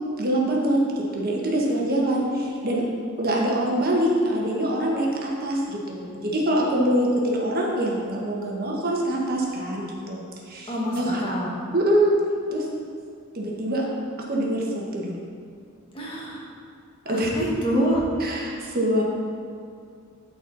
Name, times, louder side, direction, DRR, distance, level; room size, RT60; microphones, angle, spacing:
voice 1, 0.2-2.8 3.2-10.2 10.5-11.2 11.7-12.2 12.5-12.7 13.3-13.8 14.3-15.1 17.0-17.3 18.2-19.0, right 1 dB, 50° right, -2 dB, 1.2 m, -24 dB
voice 2, 10.7-11.5 15.9-16.4 17.1-18.0, right 1 dB, 25° left, -5 dB, 1.5 m, -26 dB
12.5 x 4.2 x 4.0 m, 2.3 s
head